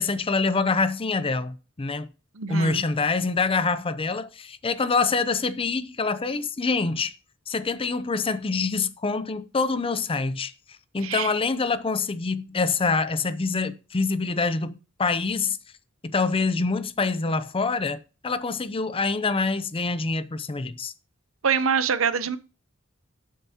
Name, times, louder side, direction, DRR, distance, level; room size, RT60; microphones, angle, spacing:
voice 1, 0.0-2.1 2.5-7.1 7.5-10.5 10.9-15.6 16.0-20.9, left 4 dB, 25° left, 0.5 m, -25 dB
voice 2, 2.3-2.9 11.0-11.3 21.4-22.4, right 6 dB, 70° right, 0.7 m, -25 dB
12.5 x 7.4 x 2.8 m
head